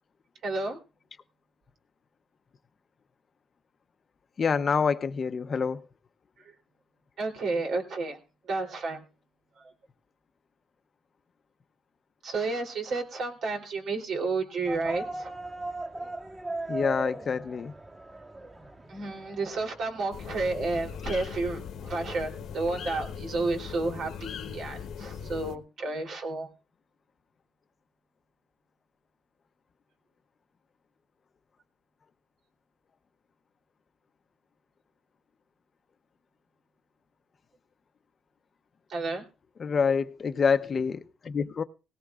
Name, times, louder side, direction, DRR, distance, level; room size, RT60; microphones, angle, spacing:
voice 1, 0.4-0.8 6.4-6.5 7.2-8.2 8.5-9.0 9.6-9.7 12.2-15.3 16.0-16.1 18.4-18.5 18.9-26.5 38.9-39.2, right 3 dB, 70° right, 3.3 m, -31 dB
voice 2, 4.4-5.8 16.7-17.7 39.6-41.6, left 6 dB, 45° left, 0.8 m, -27 dB
sound 1, 14.7-20.5, right 2 dB, 25° right, 2.2 m, -38 dB
sound 2, 20.1-25.6, left 7 dB, 75° left, 1.1 m, -39 dB
18.5 x 17.5 x 2.4 m
cardioid pair, 90°, 0 cm